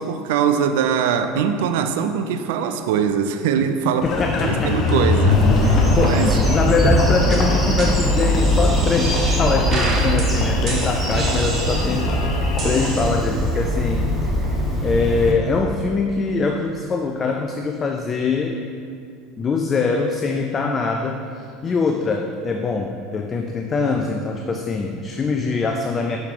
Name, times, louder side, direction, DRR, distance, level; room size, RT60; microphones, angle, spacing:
voice 1, 0.0-4.1 4.4-6.4, right 7 dB, 65° right, 8 dB, 0.4 m, -22 dB
Engine, 4.0-13.0, left 3 dB, 45° left, 0.8 m, -23 dB
voice 2, 4.2-4.8 5.7-12.2 12.6-14.3 14.8-18.6 19.4-26.2, left 4 dB, 30° left, 4 dB, 0.4 m, -23 dB
Bird vocalization bird call bird song, 5.3-15.3, equal, 10° right, 1.1 m, -22 dB
sound 1, 6.8-7.0 7.3-7.4 7.8-7.9 8.3-9.4 9.7-10.2 10.7-12.1 12.6-13.5, right 3 dB, 40° right, 1.0 m, -27 dB
6.4 x 4.6 x 3.5 m, 2.3 s
figure-of-eight pair, 70°, 0 cm